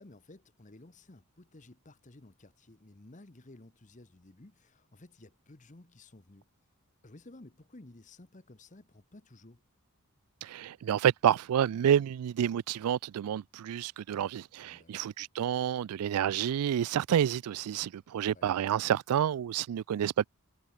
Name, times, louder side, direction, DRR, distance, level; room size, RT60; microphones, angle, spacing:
voice 1, 0.0-6.5 7.0-9.6 14.6-15.0 18.3-18.5, left 2 dB, 35° left, 1.1 m, -54 dB
voice 2, 10.4-20.3, right 9 dB, 85° right, 0.3 m, -29 dB
head